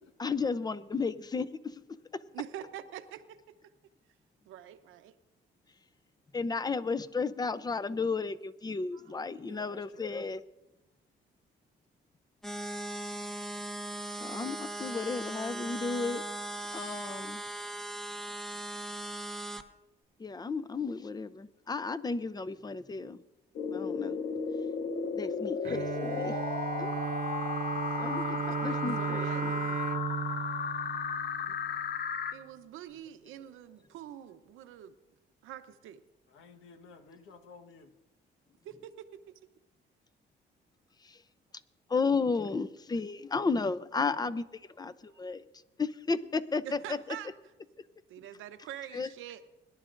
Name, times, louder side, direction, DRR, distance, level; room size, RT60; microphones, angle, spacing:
voice 1, 0.2-1.7 2.1-2.2 6.3-10.4 14.2-16.2 16.7-17.4 20.2-23.2 23.7-24.2 25.1-26.4 26.8-26.9 28.0-29.6 41.1-41.2 41.9-44.4 44.8-45.4 45.8-47.0 48.9-49.1, left 4 dB, 20° left, 15 dB, 0.6 m, -33 dB
voice 2, 2.3-3.5 4.5-5.2 8.9-9.2 28.1-29.8 32.3-34.9 35.4-36.0 38.6-39.3 45.1-45.2 46.6-47.3 48.1-49.4, right 10 dB, 90° right, 10 dB, 0.8 m, -45 dB
voice 3, 9.4-10.1 31.4-31.6 36.3-37.9, left 4 dB, 90° left, 6 dB, 1.4 m, -54 dB
sound 1, 12.4-19.6, right 1 dB, ahead, 0.9 m, -39 dB
sound 2, 23.6-32.3, left 6 dB, 55° left, 0.9 m, -34 dB
Bowed string instrument, 25.7-31.8, right 9 dB, 45° right, 0.4 m, -35 dB
21.5 x 11.5 x 2.6 m, 1.0 s
cardioid pair, 90°, 20 cm